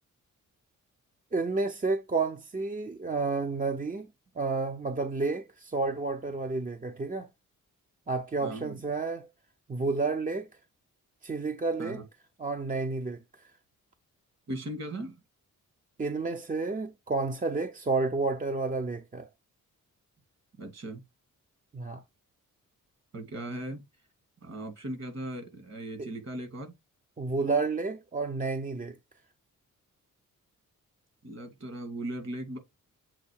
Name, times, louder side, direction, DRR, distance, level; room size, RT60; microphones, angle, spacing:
voice 1, 1.3-4.1 4.4-7.3 8.1-9.3 9.7-10.5 11.2-12.0 12.4-13.2 16.0-19.3 21.7-22.0 26.0-26.1 27.2-29.0, right 3 dB, 25° right, 0.7 m, -30 dB
voice 2, 8.4-8.8 11.8-12.0 14.5-15.2 20.6-21.0 23.1-23.8 24.4-26.7 31.2-32.6, right 1 dB, 50° right, 2.6 m, -38 dB
7.4 x 2.7 x 4.8 m
cardioid pair, 80°, 33 cm